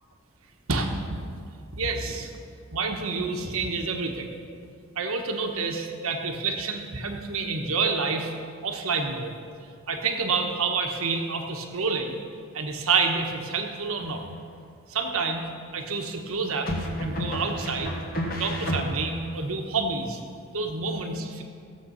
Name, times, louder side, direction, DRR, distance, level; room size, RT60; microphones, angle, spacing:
voice 1, 0.7-1.4 1.8-2.3 2.7-4.3 5.0-8.3 8.6-9.3 9.9-12.2 12.5-14.2 14.9-15.4 15.7-16.7 17.0-17.9 18.4-20.2 20.5-21.4, right 4 dB, 80° right, 3 dB, 1.3 m, -28 dB
sound 1, 14.0-14.6 16.7-19.3, equal, 45° left, 1.7 m, -31 dB
16.0 x 7.7 x 5.7 m, 2.3 s
head